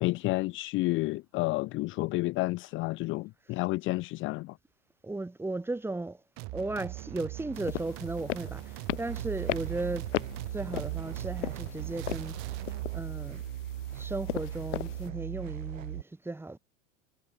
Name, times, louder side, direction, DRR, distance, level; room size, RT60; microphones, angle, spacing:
voice 1, 0.0-4.5, left 21 dB, 30° left, 0.7 m, -30 dB
voice 2, 5.0-6.2 6.5-10.1 10.5-12.5 12.9-13.4 13.9-16.6, right 2 dB, 5° right, 4.3 m, -36 dB
sound 1, 6.4-13.0, right 26 dB, 45° right, 3.3 m, -41 dB
sound 2, 7.5-15.1, left 17 dB, 70° left, 1.6 m, -38 dB
sound 3, 9.1-16.0, right 12 dB, 85° right, 2.7 m, -38 dB
supercardioid pair, 135°, 38 cm